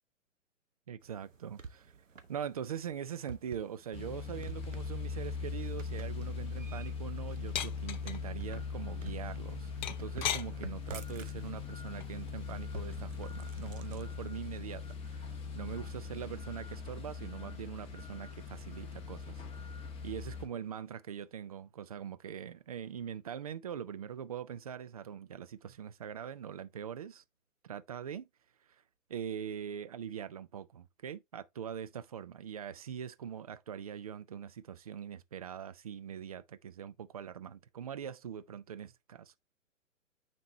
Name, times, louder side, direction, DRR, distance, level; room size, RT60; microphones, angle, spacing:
voice 1, 0.9-1.9 2.3-19.4 20.0-27.2 27.6-28.3 28.7-28.8 29.1-39.3, right 8 dB, 30° right, 0.4 m, -42 dB
sound 1, 1.0-14.2, right 5 dB, 75° right, 1.2 m, -51 dB
sound 2, 3.9-20.5, left 5 dB, 15° left, 1.4 m, -40 dB
sound 3, 7.5-8.2 9.8-10.5 12.0-12.3, left 10 dB, 35° left, 0.7 m, -34 dB
9.1 x 4.2 x 3.0 m
figure-of-eight pair, 125°, 39 cm